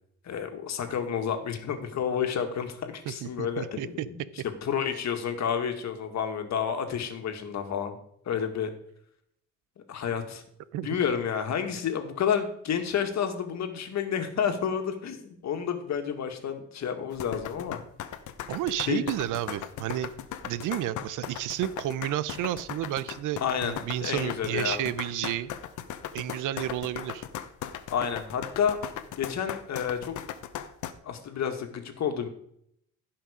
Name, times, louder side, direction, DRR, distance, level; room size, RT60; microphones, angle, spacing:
voice 1, 0.2-4.2 4.6-8.0 8.3-8.7 9.9-10.4 10.8-17.8 18.9-19.0 23.4-23.7 24.0-24.8 27.9-28.8 29.2-30.2 31.0-32.3, left 7 dB, 65° left, 6 dB, 1.9 m, -30 dB
voice 2, 3.0-4.1 10.7-10.9 18.5-20.1 20.4-25.5 26.1-27.2, right 12 dB, 90° right, 16 dB, 0.7 m, -31 dB
sound 1, 17.1-30.9, left 10 dB, 80° left, 1.0 m, -38 dB
16.0 x 5.8 x 5.1 m, 0.70 s
cardioid pair, 90°, 30 cm